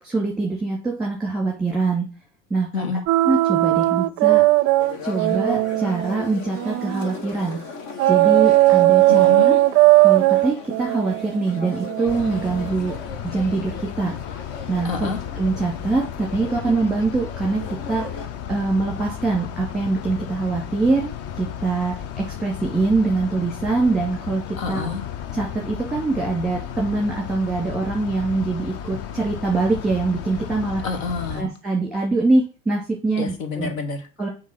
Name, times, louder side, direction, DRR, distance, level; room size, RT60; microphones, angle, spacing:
voice 1, 0.0-2.1 2.5-2.9 3.2-4.4 5.0-7.6 8.1-9.3 10.0-13.0 13.2-14.2 14.7-24.9 25.3-30.8 31.3-33.7 34.2-34.3, right 3 dB, ahead, -1 dB, 2.5 m, -24 dB
sound 1, 3.1-7.2 8.0-12.7, right 18 dB, 40° right, 0.5 m, -18 dB
sound 2, 4.8-18.3, left 4 dB, 55° left, 1.8 m, -38 dB
voice 2, 9.1-9.6 14.8-15.2 24.6-25.0 30.8-31.5 33.2-34.1, left 4 dB, 75° left, 8 dB, 2.0 m, -27 dB
sound 3, 12.1-31.4, left 9 dB, 35° left, 0.7 m, -34 dB
7.3 x 3.7 x 6.4 m, 0.35 s
hypercardioid pair, 95°, 40 cm